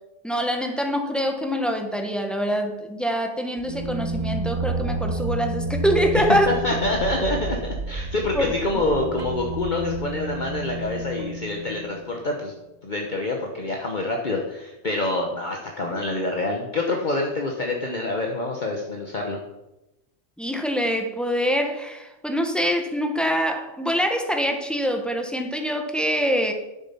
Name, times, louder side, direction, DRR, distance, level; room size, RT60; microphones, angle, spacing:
voice 1, 0.2-6.6 8.3-8.5 20.4-26.5, equal, ahead, 4 dB, 1.1 m, -24 dB
sound 1, 3.6-12.1, right 3 dB, 40° right, 0.9 m, -30 dB
voice 2, 6.5-12.5 12.8-19.4, left 2 dB, 40° left, 1 dB, 1.2 m, -26 dB
10.0 x 7.8 x 5.7 m, 0.96 s
omnidirectional pair, 1.3 m